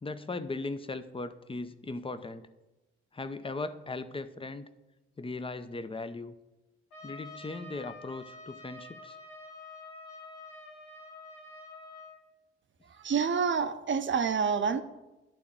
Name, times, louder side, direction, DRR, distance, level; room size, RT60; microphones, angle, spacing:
voice 1, 0.0-2.5 3.1-4.7 5.2-6.3 7.0-9.2, left 3 dB, 15° left, 12 dB, 0.7 m, -38 dB
Trumpet, 6.9-12.2, left 2 dB, 80° left, 1.4 m, -48 dB
voice 2, 13.0-14.8, right 6 dB, 40° right, 10 dB, 0.8 m, -27 dB
11.0 x 3.8 x 7.2 m, 1.0 s
hypercardioid pair, 40°, 31 cm